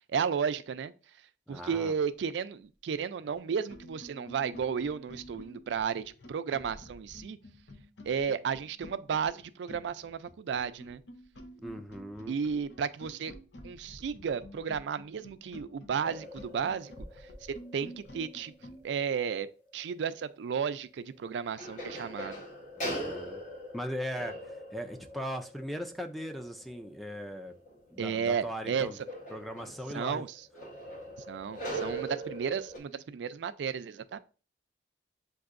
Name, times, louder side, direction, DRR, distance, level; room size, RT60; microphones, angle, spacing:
voice 1, 0.1-0.9 1.5-7.4 8.1-11.0 12.3-13.3 13.6-16.9 17.7-18.5 18.8-19.5 19.7-22.4 28.0-28.9 29.9-30.3 31.3-34.2, right 6 dB, 80° right, 0.3 m, -33 dB
voice 2, 1.5-1.9 11.6-12.4 22.8-23.4 23.7-27.5 27.9-29.0 29.3-30.2, equal, ahead, 0.3 m, -39 dB
sound 1, 3.2-3.3 3.7-18.8, equal, 80° left, 0.8 m, -50 dB
sound 2, 16.0-19.2 19.7-19.8 21.1-21.2 21.6-32.8, right 1 dB, 45° left, 1.1 m, -42 dB
7.6 x 2.6 x 2.5 m
head